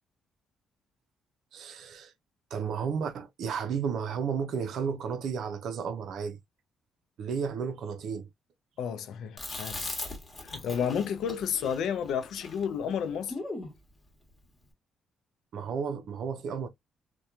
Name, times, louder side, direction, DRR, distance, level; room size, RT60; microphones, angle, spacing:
voice 1, 1.5-2.1 2.5-6.4 7.2-8.3 15.5-16.7, right 6 dB, 70° right, 0.5 m, -33 dB
voice 2, 8.8-9.8 10.4-13.3, left 7 dB, 80° left, 0.4 m, -31 dB
Chewing mastication, 9.4-13.8, left 2 dB, 25° left, 1.1 m, -39 dB
2.8 x 2.2 x 2.3 m
cardioid pair, 90°, 0 cm